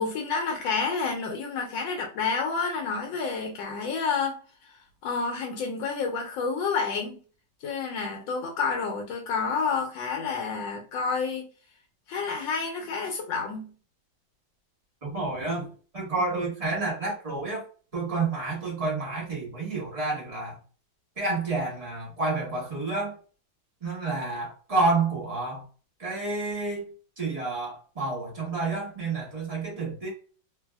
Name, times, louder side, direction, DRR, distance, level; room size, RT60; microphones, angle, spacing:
voice 1, 0.0-4.4 4.6-7.2 7.6-11.5 12.1-13.7, left 5 dB, 80° left, 1.3 m, -29 dB
voice 2, 15.0-15.7 15.9-17.6 17.9-20.6 21.2-23.1 23.8-25.6 26.0-26.9 27.2-30.1, right 3 dB, 25° right, 0.8 m, -29 dB
3.2 x 2.6 x 2.2 m
omnidirectional pair, 2.1 m